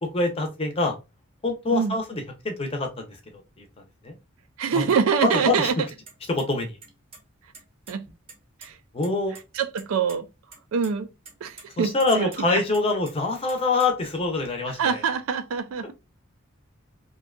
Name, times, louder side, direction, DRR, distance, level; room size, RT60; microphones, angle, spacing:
voice 1, 0.0-0.9 1.4-3.7 4.0-4.2 4.7-4.9 5.2-5.7 6.3-6.8 8.9-9.4 11.8-15.0, left 3 dB, 30° left, 0.6 m, -25 dB
voice 2, 4.6-5.7 7.9-8.0 8.6-8.7 9.6-10.3 10.7-11.1 11.4-12.6 14.8-15.9, right 6 dB, 80° right, 0.4 m, -25 dB
sound 1, 6.1-6.4 6.8-7.2 7.5-8.7 9.0-9.1 9.3-9.4 9.8-10.2 10.5-10.9 11.2-11.6 12.0-12.4 12.7-14.1, right 4 dB, 30° right, 0.6 m, -46 dB
2.6 x 2.2 x 2.3 m
head